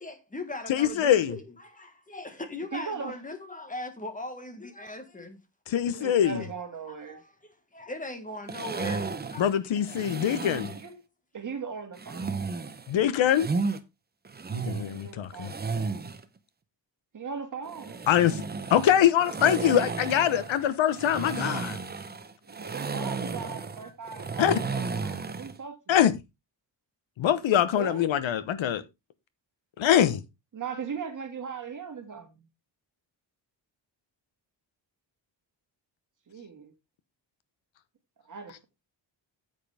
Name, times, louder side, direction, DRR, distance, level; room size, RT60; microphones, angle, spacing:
voice 1, 0.0-5.4 5.9-6.0 6.4-6.5 6.8-9.4, left 2 dB, 15° left, 1.6 m, -40 dB
voice 2, 0.7-1.3 5.7-6.4 9.4-10.7 12.9-13.5 14.5-15.5 18.1-18.4 18.7-21.8 24.4-24.6 25.9-26.2 27.2-28.8 29.8-30.2, left 10 dB, 85° left, 1.1 m, -23 dB
voice 3, 2.7-3.1 6.0-7.2 10.8-10.9 11.3-12.4 14.9-15.7 17.1-18.1 22.5-26.0 27.8-28.0 30.5-32.4 36.3-36.7 38.3-38.6, right 6 dB, 40° right, 2.2 m, -38 dB
sound 1, 8.5-10.9 12.0-13.8 14.2-16.2 17.7-25.6, right 4 dB, 20° right, 0.8 m, -34 dB
9.0 x 8.2 x 3.4 m
wide cardioid pair, 150°, 45 cm